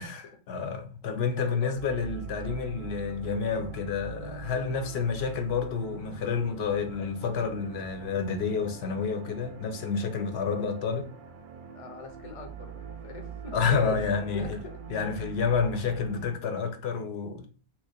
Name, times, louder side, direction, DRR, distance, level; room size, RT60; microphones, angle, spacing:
voice 1, 0.0-11.1 13.5-14.6 14.9-17.5, left 5 dB, 75° left, 0.8 m, -29 dB
voice 2, 1.0-1.7 11.7-14.0 14.3-14.7, left 5 dB, 40° left, 0.6 m, -43 dB
sound 1, 1.8-16.3, right 7 dB, 60° right, 0.6 m, -43 dB
3.0 x 2.0 x 4.0 m
omnidirectional pair, 1.1 m